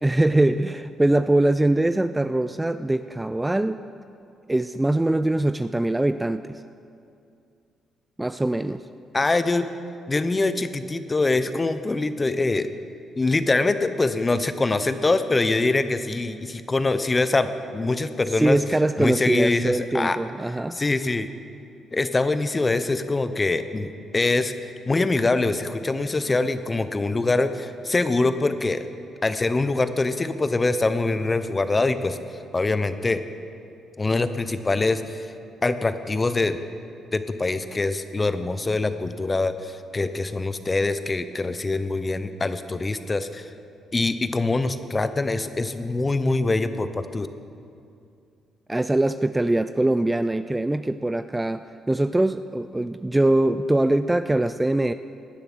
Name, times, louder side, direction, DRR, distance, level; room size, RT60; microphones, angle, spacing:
voice 1, 0.0-3.8 4.5-6.6 8.2-8.8 18.4-20.8 48.7-54.9, right 1 dB, 10° right, 11 dB, 0.4 m, -22 dB
voice 2, 9.1-9.7 10.1-12.7 13.2-18.6 19.0-20.2 20.7-21.3 21.9-24.5 24.9-28.9 29.2-32.2 32.5-33.2 34.0-35.3 35.6-36.6 37.1-43.5 43.9-47.3, left 3 dB, 25° left, 11 dB, 0.8 m, -24 dB
17.5 x 10.5 x 6.2 m, 2.5 s
cardioid pair, 90°, 0 cm